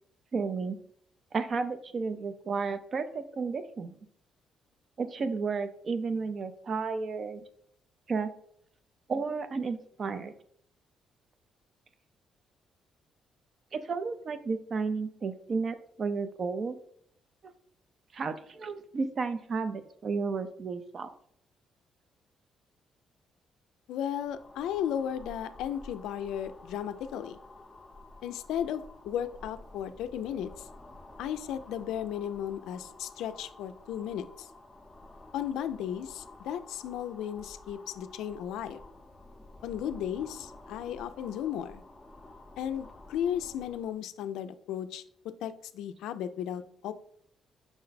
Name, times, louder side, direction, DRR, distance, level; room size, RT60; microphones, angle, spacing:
voice 1, 0.3-0.8 1.3-4.0 5.0-7.4 8.1-8.3 9.1-10.3 13.7-16.8 18.1-21.1, right 4 dB, 45° right, 10 dB, 0.5 m, -32 dB
voice 2, 23.9-27.4 28.2-30.7 31.2-34.5 35.3-38.8 39.6-41.8 42.6-45.0 45.4-46.9, left 9 dB, 85° left, 11 dB, 0.3 m, -35 dB
sound 1, 24.1-44.0, left 2 dB, 15° left, 0.6 m, -51 dB
5.9 x 2.2 x 4.0 m, 0.68 s
cardioid pair, 95°, 0 cm